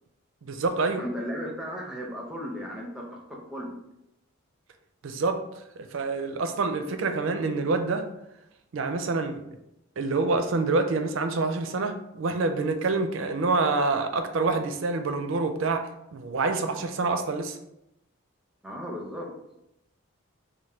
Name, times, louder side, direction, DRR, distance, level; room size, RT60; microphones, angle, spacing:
voice 1, 0.4-1.0 5.0-5.4 5.8-8.1 8.7-9.4 10.0-17.6, right 3 dB, 65° right, 7 dB, 0.4 m, -27 dB
voice 2, 1.0-3.7 18.6-19.3, equal, 5° right, -1 dB, 0.5 m, -35 dB
3.2 x 2.2 x 4.2 m, 0.84 s
head